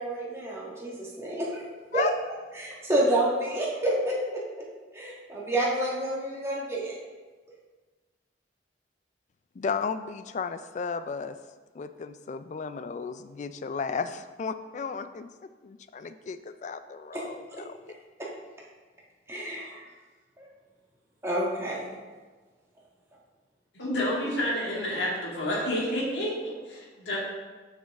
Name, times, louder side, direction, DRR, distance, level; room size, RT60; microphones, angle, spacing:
voice 1, 0.0-2.1 2.6-4.1 4.9-7.0 19.3-19.8 21.2-21.9, right 1 dB, 15° right, -5 dB, 1.4 m, -29 dB
voice 2, 9.6-11.4 11.7-17.8, left 5 dB, 40° left, 11 dB, 0.3 m, -34 dB
voice 3, 23.7-27.2, left 1 dB, 80° left, -4 dB, 2.0 m, -29 dB
6.6 x 6.1 x 3.5 m, 1.3 s
head